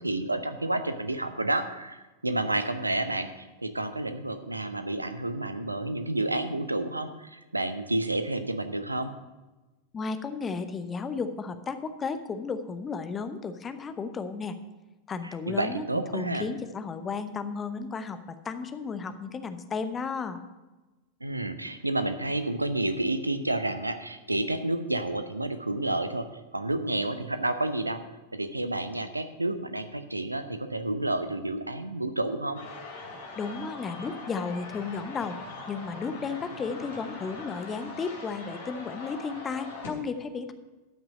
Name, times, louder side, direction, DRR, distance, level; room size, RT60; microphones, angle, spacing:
voice 1, 0.0-9.1 15.2-16.5 21.2-26.3 26.5-28.0 28.3-32.6, right 2 dB, 85° right, 10 dB, 0.7 m, -30 dB
voice 2, 9.9-14.6 15.1-15.9 16.1-20.4 33.4-35.4 35.7-40.5, left 5 dB, 20° left, 10 dB, 0.8 m, -34 dB
sound 1, 32.5-39.9, left 3 dB, 60° left, 2.7 m, -42 dB
13.0 x 6.0 x 6.4 m, 1.1 s
figure-of-eight pair, 90°, 0 cm